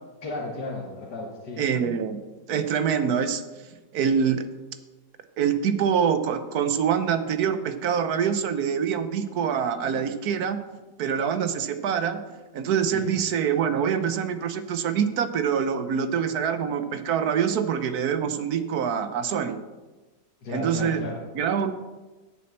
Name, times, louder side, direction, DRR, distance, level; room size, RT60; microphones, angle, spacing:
voice 1, 0.2-1.7 12.9-13.1 20.4-21.3, left 2 dB, 90° left, -3 dB, 2.1 m, -34 dB
voice 2, 1.6-2.2 2.5-3.4 3.9-4.5 5.4-10.6 11.0-12.2 12.5-19.6 20.5-21.0 21.3-21.7, right 7 dB, 70° right, 10 dB, 1.3 m, -25 dB
8.7 x 7.2 x 7.5 m, 1.2 s
omnidirectional pair, 1.8 m